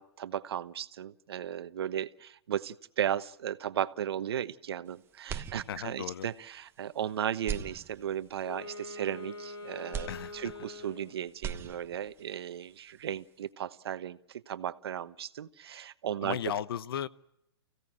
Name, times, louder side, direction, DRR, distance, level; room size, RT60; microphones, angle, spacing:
voice 1, 0.0-16.4, right 10 dB, 70° right, 13 dB, 1.2 m, -35 dB
sound 1, 5.2-6.2 6.6-6.7 7.3-8.4 9.9-11.0 11.3-12.2, right 7 dB, 15° right, 1.2 m, -40 dB
voice 2, 5.7-6.3 10.1-10.4 16.2-17.1, left 9 dB, 65° left, 16 dB, 1.0 m, -35 dB
Wind instrument woodwind instrument, 8.3-11.3, left 2 dB, 80° left, 7.4 m, -44 dB
30.0 x 16.5 x 7.6 m, 0.82 s
hypercardioid pair, 140°, 13 cm